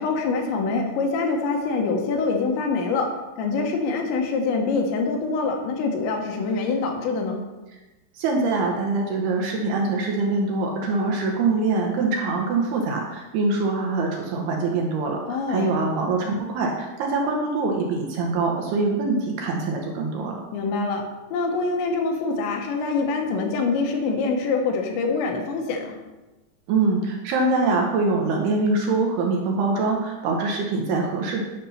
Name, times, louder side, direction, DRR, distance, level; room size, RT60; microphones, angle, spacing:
voice 1, 0.0-3.1 3.4-7.4 15.3-15.7 20.5-21.0 21.3-26.0, left 4 dB, 75° left, 2 dB, 3.4 m, -25 dB
voice 2, 8.2-20.4 26.7-31.4, right 3 dB, 70° right, 1 dB, 2.6 m, -24 dB
9.9 x 6.0 x 5.6 m, 1.1 s
omnidirectional pair, 5.4 m